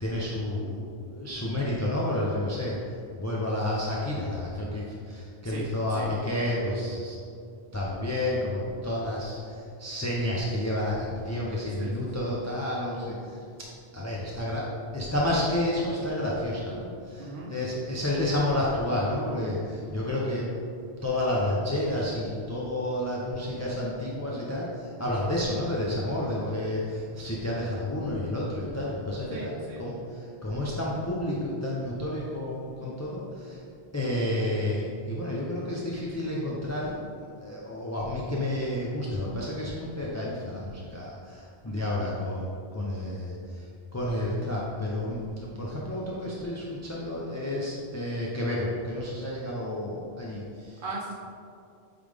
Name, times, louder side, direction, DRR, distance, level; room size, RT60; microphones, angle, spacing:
voice 1, 0.0-2.8 3.2-7.2 7.7-13.4 13.9-14.6 14.9-20.5 21.0-29.5 29.8-33.6 33.9-43.6 43.9-50.8, left 1 dB, 20° left, -6 dB, 0.6 m, -30 dB
voice 2, 11.8-12.2 17.2-17.5 29.3-29.8 41.7-41.9 50.8-51.1, right 3 dB, 55° right, -4 dB, 0.9 m, -38 dB
8.4 x 3.9 x 3.5 m, 2.4 s
omnidirectional pair, 1.1 m